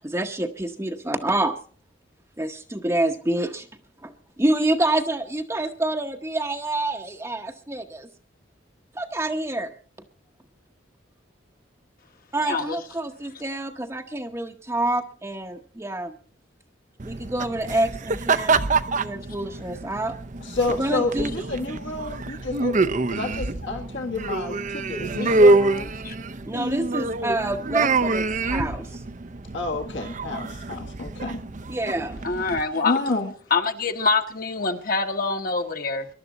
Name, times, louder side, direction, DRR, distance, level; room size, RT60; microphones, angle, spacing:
voice 1, 0.0-1.6 2.4-3.7 4.0-8.1 8.9-9.7 12.3-16.2 17.0-18.6 19.0-20.2 20.7-21.3 26.4-29.0 31.7-32.2, right 1 dB, 15° right, 0.8 m, -27 dB
voice 2, 12.4-12.8 26.0-26.2 32.2-33.0 33.5-36.1, left 4 dB, 45° left, 1.3 m, -25 dB
sound 1, 17.0-32.6, right 3 dB, 40° right, 0.6 m, -26 dB
voice 3, 20.4-22.8 23.1-25.9 29.5-31.4 32.8-33.3, left 3 dB, 70° left, 1.8 m, -29 dB
22.0 x 11.5 x 4.0 m
head